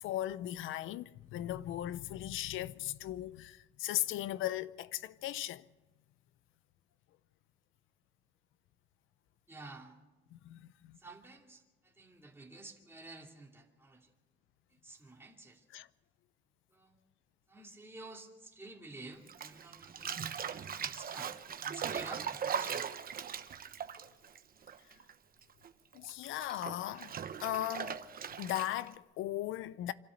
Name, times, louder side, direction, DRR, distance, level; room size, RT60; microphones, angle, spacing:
voice 1, 0.0-5.6 10.3-11.0 15.7-15.9 25.9-28.0 28.4-29.9, left 14 dB, 90° left, 0.6 m, -38 dB
voice 2, 9.5-10.0 11.0-14.1 14.8-15.6 16.7-17.0 17.5-21.3 21.6-22.9, right 2 dB, 10° right, 2.7 m, -51 dB
Bathtub (filling or washing), 19.3-25.1 25.4-28.9, right 7 dB, 45° right, 1.0 m, -40 dB
26.0 x 12.5 x 8.0 m
cardioid pair, 90°, 20 cm